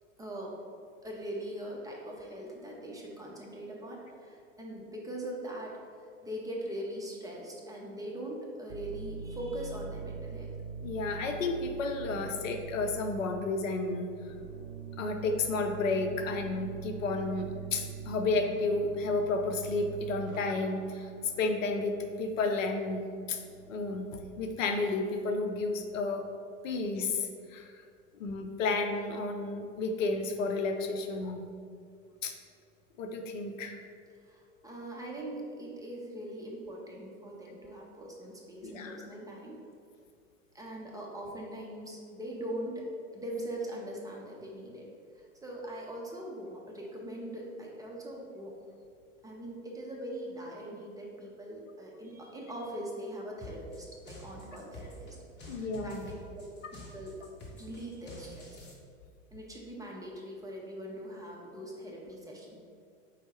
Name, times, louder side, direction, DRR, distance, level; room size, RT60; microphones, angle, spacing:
voice 1, 0.2-0.5 1.0-5.8 6.2-10.5 34.3-39.6 40.5-42.8 43.1-44.9 45.1-48.5 49.2-55.2 55.4-56.0 56.4-57.2 57.5-58.6 59.3-62.6, right 1 dB, 10° right, -3 dB, 0.4 m, -41 dB
sound 1, 8.7-26.1, right 6 dB, 85° right, 0.5 m, -44 dB
voice 2, 10.8-14.1 15.0-21.1 21.4-23.0 23.3-23.4 23.7-26.3 26.6-27.7 28.1-31.4 32.2-32.3 33.0-33.8 38.6-39.0 55.5-56.1, left 3 dB, 80° left, 5 dB, 0.5 m, -32 dB
sound 2, 53.4-58.7, equal, 25° left, 0.9 m, -47 dB
4.3 x 2.0 x 4.3 m, 2.3 s
hypercardioid pair, 85°, 39 cm